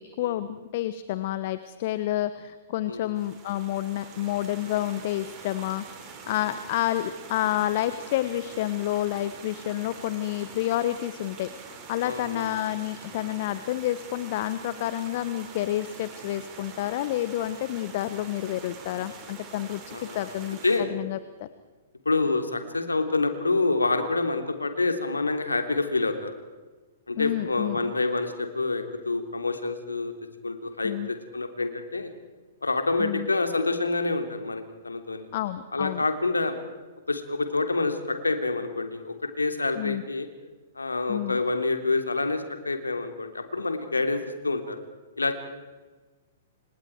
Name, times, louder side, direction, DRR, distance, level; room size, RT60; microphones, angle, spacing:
voice 1, 0.2-11.5 11.9-21.5 27.2-27.9 30.8-31.1 33.0-33.3 35.3-36.0 39.8-40.0 41.1-41.4, left 13 dB, 45° left, 13 dB, 1.2 m, -29 dB
sound 1, 3.2-20.8, right 5 dB, 25° right, 5.7 m, -44 dB
voice 2, 12.0-12.5 19.9-20.3 20.6-20.9 22.0-26.3 27.1-30.1 30.4-32.1 32.6-35.3 35.7-36.6 37.1-40.3 40.7-44.2 44.4-44.8 45.2-45.3, left 3 dB, 80° left, 7 dB, 3.1 m, -27 dB
30.0 x 26.5 x 4.7 m, 1.3 s
figure-of-eight pair, 110°, 0 cm